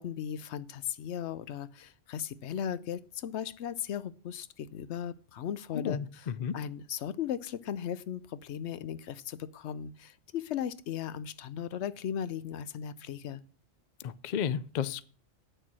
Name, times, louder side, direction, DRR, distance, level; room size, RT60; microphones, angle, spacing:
voice 1, 0.0-6.0 6.5-13.4, left 9 dB, 70° left, 0.9 m, -37 dB
voice 2, 5.7-6.5 14.0-15.1, left 8 dB, 55° left, 0.5 m, -33 dB
9.1 x 6.7 x 6.0 m
omnidirectional pair, 1.2 m